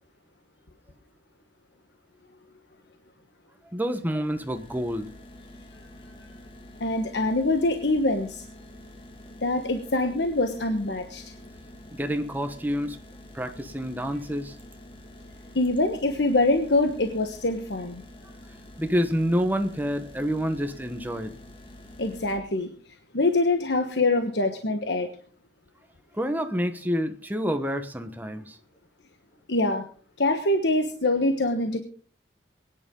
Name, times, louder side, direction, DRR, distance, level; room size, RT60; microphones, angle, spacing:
voice 1, 3.7-5.1 11.9-13.0 13.3-14.6 18.8-21.4 26.1-28.6, equal, 10° right, 7 dB, 1.1 m, -28 dB
sound 1, 3.9-22.4, left 1 dB, 30° left, 2.1 m, -47 dB
voice 2, 6.8-8.4 9.4-11.3 15.5-18.0 22.0-22.7 23.1-25.1 29.5-29.8 30.2-31.8, left 2 dB, 75° left, 6 dB, 1.2 m, -24 dB
22.5 x 10.0 x 3.8 m, 0.42 s
head